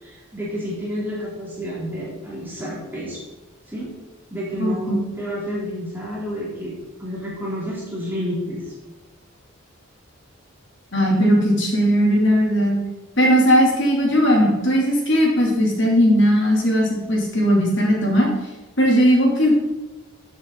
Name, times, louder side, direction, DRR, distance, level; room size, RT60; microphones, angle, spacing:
voice 1, 0.0-3.2 3.7-3.9 4.3-8.7, equal, 10° right, -7 dB, 3.4 m, -30 dB
voice 2, 4.6-4.9 10.9-12.8 13.2-18.3 18.8-19.6, equal, 60° left, -1 dB, 3.2 m, -18 dB
14.0 x 7.3 x 4.0 m, 1.1 s
head